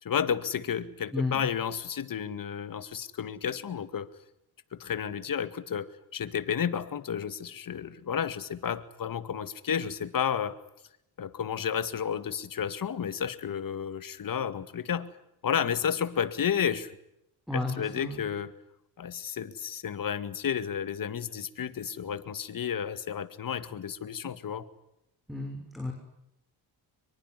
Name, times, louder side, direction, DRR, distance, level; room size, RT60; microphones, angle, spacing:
voice 1, 0.0-4.1 4.7-10.6 11.2-15.1 15.4-17.0 17.5-18.5 19.0-24.7, left 8 dB, 50° left, 12 dB, 2.2 m, -32 dB
voice 2, 1.1-1.5 17.5-18.2 25.3-25.9, left 2 dB, ahead, 3 dB, 6.2 m, -32 dB
25.5 x 23.5 x 9.7 m, 0.80 s
cardioid pair, 100°, 42 cm